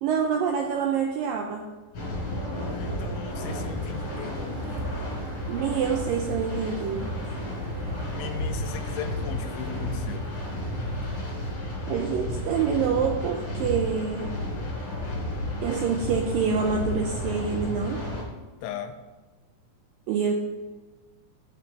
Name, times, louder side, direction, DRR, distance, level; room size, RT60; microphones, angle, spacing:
voice 1, 0.0-1.7 5.5-7.1 11.9-14.3 15.6-18.0 20.1-20.3, right 6 dB, 90° right, 2 dB, 2.0 m, -26 dB
sound 1, 1.9-18.2, left 1 dB, 40° left, 4.5 m, -32 dB
voice 2, 2.7-4.6 8.1-10.3 18.6-19.0, left 8 dB, 80° left, 8 dB, 2.6 m, -38 dB
Wind / Thunder / Rain, 3.3-11.5, right 4 dB, 70° right, 2.4 m, -44 dB
11.0 x 9.0 x 4.1 m, 1.3 s
omnidirectional pair, 4.9 m